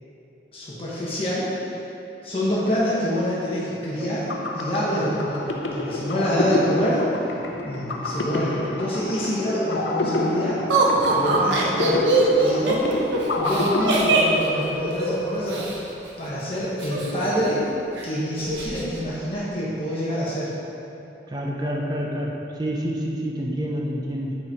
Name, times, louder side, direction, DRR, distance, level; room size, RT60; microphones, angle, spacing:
voice 1, 0.5-1.8 2.2-7.0 7.6-10.6 11.1-12.0 12.4-13.0 13.4-15.8 16.2-17.7 18.0-20.5, equal, 30° left, -8 dB, 1.3 m, -26 dB
sound 1, 4.0-14.8, left 2 dB, 80° left, 0.7 m, -28 dB
Laughter, 10.7-15.8 16.8-17.7 18.0-18.1 18.4-18.9, right 3 dB, 85° right, 1.0 m, -22 dB
voice 2, 21.3-24.4, equal, 20° right, -1 dB, 0.6 m, -28 dB
8.7 x 4.5 x 4.7 m, 3.0 s
head